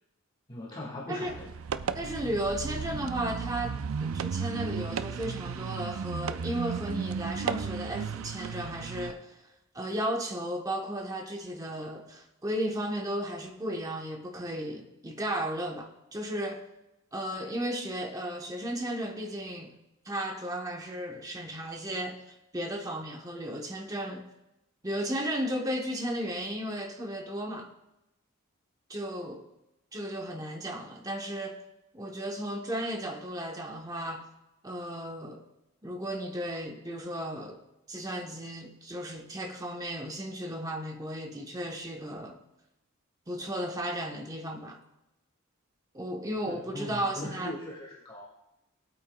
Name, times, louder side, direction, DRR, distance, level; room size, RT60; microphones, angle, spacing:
voice 1, 0.5-1.5 46.5-48.3, left 1 dB, 25° left, 1.8 m, -40 dB
sound 1, 1.3-9.1, right 6 dB, 70° right, 0.4 m, -34 dB
voice 2, 1.9-9.4 9.7-16.6 17.1-19.7 20.1-22.2 22.5-24.2 24.8-27.7 28.9-29.4 29.9-31.6 31.9-34.3 34.6-35.4 35.8-37.6 37.9-42.4 43.3-44.8 45.9-47.6, right 1 dB, 15° right, 1.0 m, -34 dB
19.0 x 8.7 x 2.3 m
head